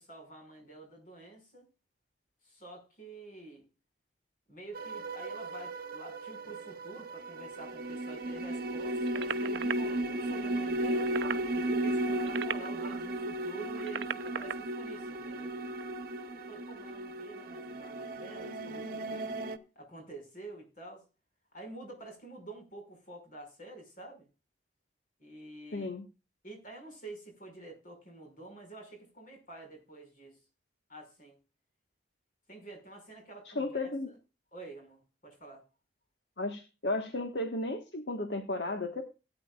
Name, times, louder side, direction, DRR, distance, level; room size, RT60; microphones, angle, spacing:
voice 1, 0.0-1.7 2.4-3.7 4.5-11.1 11.5-15.5 16.5-19.3 19.8-21.0 21.5-24.3 25.2-25.9 26.4-30.4 30.9-31.4 32.5-33.9 34.5-35.7, right 2 dB, 50° left, 5.6 m, -48 dB
sound 1, 4.7-19.6, right 1 dB, 55° right, 1.0 m, -35 dB
sound 2, 9.1-9.7 10.9-11.4 12.1-13.0 13.7-14.5 15.7-15.9, right 7 dB, 85° right, 0.6 m, -37 dB
voice 2, 25.7-26.0 33.5-34.1 36.4-39.0, left 2 dB, 75° left, 1.5 m, -34 dB
18.0 x 9.5 x 2.4 m
head